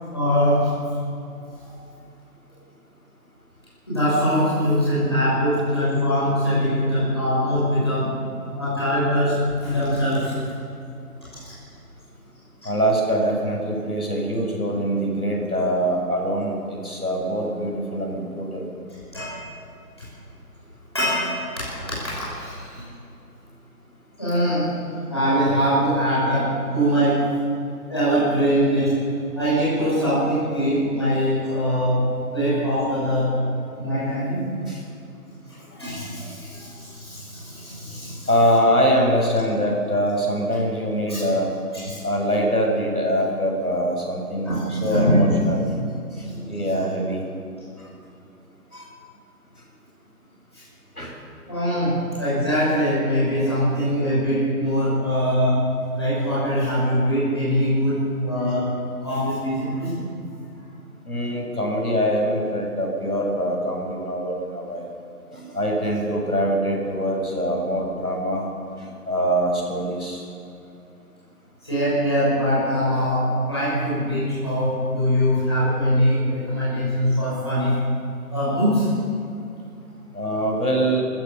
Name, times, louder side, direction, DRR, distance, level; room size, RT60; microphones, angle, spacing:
voice 1, 0.1-0.9 1.6-1.8 3.9-8.3 8.6-10.4 11.4-11.5 19.1-19.4 20.9-22.9 24.2-24.7 25.0-27.3 27.9-29.0 29.3-33.4 33.8-34.5 35.5-38.3 41.1-41.2 41.8-42.0 44.4-45.2 46.2-46.9 50.5-50.6 51.5-55.7 55.9-58.7 59.0-60.0 71.6-77.7 78.3-78.9, equal, 15° left, -10 dB, 5.8 m, -22 dB
voice 2, 12.6-18.7 34.7-34.8 38.3-41.5 42.0-45.7 46.2-47.2 47.8-47.9 48.7-48.9 51.0-51.1 61.1-64.9 65.3-68.4 68.8-70.2 80.1-81.0, equal, 75° left, 0 dB, 7.0 m, -23 dB
25.0 x 15.0 x 7.0 m, 2.6 s
figure-of-eight pair, 180°, 46 cm